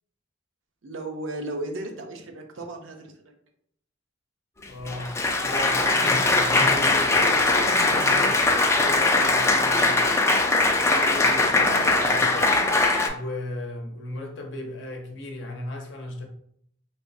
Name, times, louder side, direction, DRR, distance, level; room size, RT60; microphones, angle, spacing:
voice 1, 0.8-3.3, right 2 dB, 80° right, 0.6 m, -35 dB
voice 2, 4.6-5.1 5.4-8.3 8.7-10.3 10.7-12.7 13.0-16.3, left 1 dB, 65° left, 0.7 m, -36 dB
Applause, 4.6-13.1, left 2 dB, 15° left, 0.3 m, -21 dB
3.4 x 3.0 x 2.6 m
head